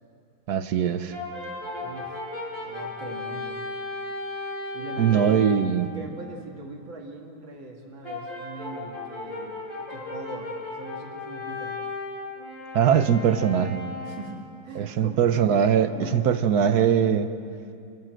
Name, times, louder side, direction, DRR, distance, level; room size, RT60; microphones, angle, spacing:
voice 1, 0.5-1.1 5.0-5.9 12.7-13.8 14.7-17.3, right 8 dB, 60° right, 10 dB, 1.3 m, -21 dB
Brass instrument, 1.1-5.7 8.0-14.4, left 2 dB, 40° left, 6.6 m, -35 dB
voice 2, 1.8-2.2 2.6-3.6 4.7-9.6 9.9-11.8 14.1-15.3 15.9-16.3, right 2 dB, 80° right, 0 dB, 3.1 m, -40 dB
29.0 x 14.5 x 7.8 m, 2.5 s
omnidirectional pair, 2.1 m